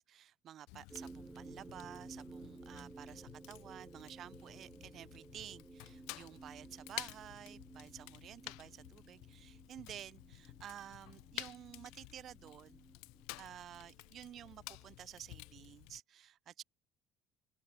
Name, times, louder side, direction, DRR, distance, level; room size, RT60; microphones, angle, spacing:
voice 1, 0.0-12.9 13.4-16.6, right 10 dB, 55° right, 1.5 m, -52 dB
Fire, 0.7-16.0, left 29 dB, 80° left, 0.9 m, -52 dB
sound 1, 0.9-15.8, right 3 dB, 20° right, 6.3 m, -56 dB
open air
supercardioid pair, 85°, 0 cm